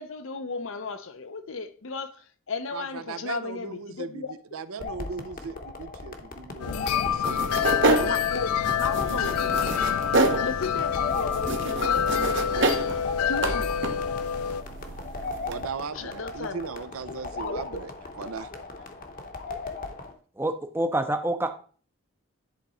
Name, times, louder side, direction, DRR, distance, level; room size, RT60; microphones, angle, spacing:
voice 1, 0.0-4.3 8.0-9.4 10.4-14.2 15.9-16.6 17.4-17.5, left 4 dB, 65° left, 0.7 m, -35 dB
voice 2, 2.7-4.2 4.5-7.5 15.5-18.5, right 5 dB, 75° right, 0.6 m, -38 dB
sound 1, 4.8-20.1, left 3 dB, 40° left, 1.0 m, -38 dB
sound 2, 6.6-14.6, left 8 dB, 90° left, 0.4 m, -27 dB
sound 3, 7.2-15.6, right 2 dB, 55° right, 0.9 m, -29 dB
voice 3, 20.4-21.5, right 1 dB, 10° right, 0.6 m, -27 dB
10.5 x 3.7 x 4.2 m
head